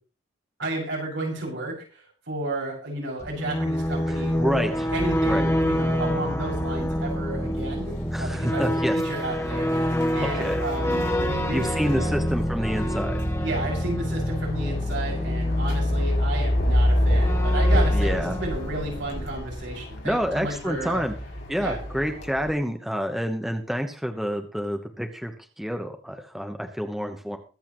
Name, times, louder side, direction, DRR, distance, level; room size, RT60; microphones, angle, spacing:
voice 1, 0.6-2.0 2.3-12.1 13.4-21.0 21.6-21.8, right 2 dB, 70° right, -2 dB, 6.3 m, -32 dB
sound 1, 3.2-19.8, equal, 15° left, 1.4 m, -28 dB
Fiets & Bus, 3.8-22.5, left 1 dB, 65° left, 6.0 m, -28 dB
voice 2, 4.1-4.9 5.2-5.5 8.1-9.4 10.2-10.6 11.5-13.2 17.9-18.4 20.0-21.2 21.5-27.4, equal, ahead, 5 dB, 1.0 m, -28 dB
22.5 x 8.4 x 3.1 m, 0.36 s
head